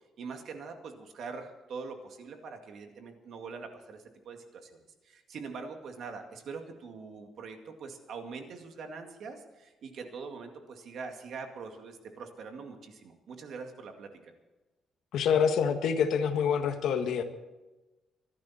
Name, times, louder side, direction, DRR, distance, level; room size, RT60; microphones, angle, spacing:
voice 1, 0.2-4.8 5.0-14.3, right 5 dB, 55° right, 4 dB, 2.2 m, -43 dB
voice 2, 15.1-17.2, left 7 dB, 70° left, 6 dB, 1.6 m, -26 dB
25.0 x 11.5 x 4.4 m, 1.1 s
cardioid pair, 170°, 0 cm